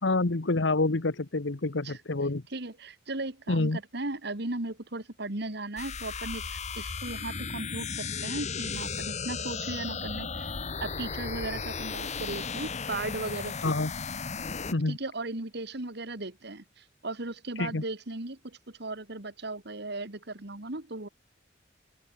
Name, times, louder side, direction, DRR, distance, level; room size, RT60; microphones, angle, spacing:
voice 1, 0.0-2.4 3.5-3.8 13.6-13.9 14.7-15.0 17.6-17.8, left 2 dB, 75° left, 1.2 m, -27 dB
voice 2, 2.5-10.5 10.8-13.7 14.9-21.1, right 2 dB, 65° right, 2.4 m, -37 dB
sound 1, 5.8-14.7, left 5 dB, 40° left, 1.1 m, -35 dB
open air
head